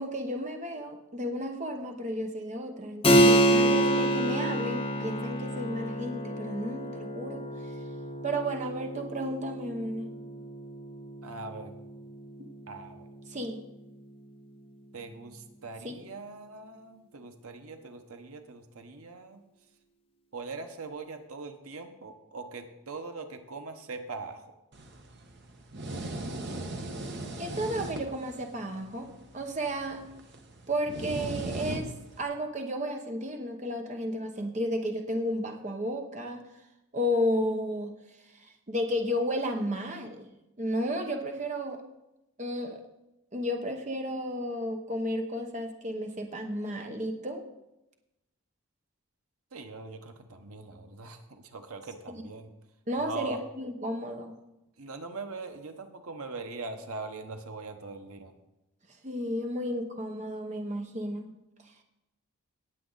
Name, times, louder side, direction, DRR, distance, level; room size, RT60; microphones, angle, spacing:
voice 1, 0.0-7.4 8.2-10.1 13.3-13.6 27.4-29.1 29.3-30.1 30.7-36.4 36.9-37.9 38.4-40.3 40.6-41.8 42.4-42.8 43.3-47.4 52.1-52.2 52.9-54.3 59.0-61.3, equal, 35° right, 4 dB, 0.9 m, -33 dB
Keyboard (musical), 3.0-13.3, right 1 dB, 25° left, 1.2 m, -28 dB
voice 2, 11.2-11.7 12.7-13.1 14.9-19.4 20.3-24.5 49.5-52.5 53.0-53.4 54.8-58.3, right 3 dB, 85° right, 6 dB, 1.2 m, -41 dB
sound 1, 24.7-32.2, right 2 dB, 50° right, 1.1 m, -39 dB
18.0 x 7.5 x 4.0 m, 0.93 s
head